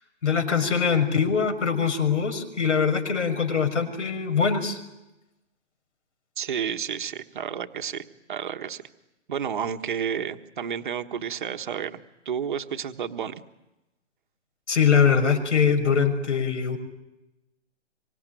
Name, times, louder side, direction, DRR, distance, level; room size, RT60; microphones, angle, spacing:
voice 1, 0.2-4.8 14.7-16.8, left 6 dB, 75° left, 7 dB, 6.2 m, -22 dB
voice 2, 6.4-8.8 9.3-12.0 12.2-13.3, right 8 dB, 40° right, 7 dB, 1.4 m, -31 dB
25.5 x 24.0 x 9.2 m, 0.96 s
hypercardioid pair, 175°, 36 cm